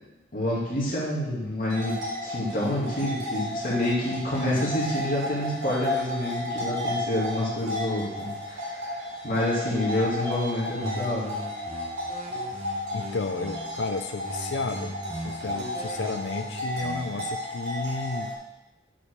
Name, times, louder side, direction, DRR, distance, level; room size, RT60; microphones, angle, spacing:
voice 1, 0.3-11.3, left 1 dB, 50° left, -6 dB, 2.3 m, -28 dB
sound 1, 1.7-18.3, equal, 80° right, 3.6 m, -33 dB
sound 2, 10.8-13.8 14.2-17.2, equal, 35° right, 1.2 m, -39 dB
voice 2, 12.9-15.0 15.2-18.3, left 4 dB, 90° left, 7 dB, 0.5 m, -32 dB
8.6 x 4.8 x 6.7 m, 0.98 s
head